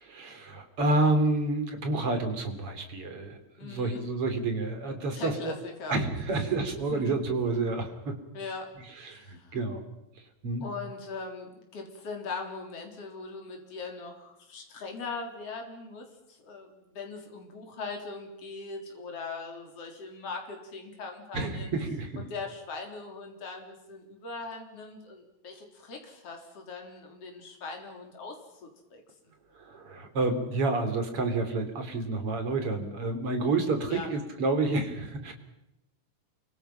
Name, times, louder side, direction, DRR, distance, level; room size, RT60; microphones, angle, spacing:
voice 1, 0.0-5.5 5.9-8.2 9.0-9.8 10.4-10.7 21.3-22.2 29.5-35.3, right 2 dB, 50° right, 6 dB, 4.1 m, -29 dB
voice 2, 3.6-4.0 5.1-5.9 6.9-7.1 8.3-8.7 9.1-9.6 10.6-21.7 22.2-28.4 28.6-29.0 33.9-34.2, left 4 dB, 55° left, 2 dB, 4.7 m, -40 dB
29.0 x 24.5 x 5.8 m, 0.91 s
omnidirectional pair, 3.3 m